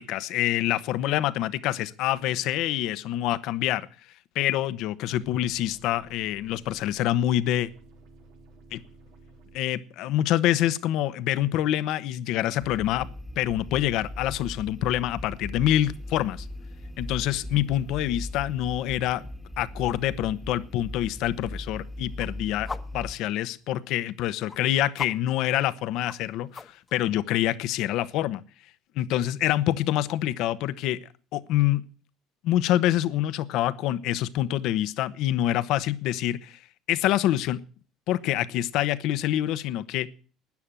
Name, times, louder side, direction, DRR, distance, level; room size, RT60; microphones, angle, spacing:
voice 1, 0.0-3.9 4.3-7.7 8.7-8.8 9.5-13.1 13.4-16.5 17.0-19.3 19.6-28.4 29.0-31.0 31.3-31.8 32.4-36.6 36.9-37.6 38.1-40.1, left 13 dB, 70° left, 16 dB, 1.0 m, -26 dB
sound 1, 5.2-9.6, right 2 dB, 80° right, 4.3 m, -53 dB
sound 2, 12.6-23.1, left 1 dB, 5° right, 1.6 m, -39 dB
sound 3, 15.7-26.9, left 4 dB, 25° left, 1.2 m, -47 dB
13.0 x 9.7 x 8.9 m, 0.41 s
supercardioid pair, 85°, 0 cm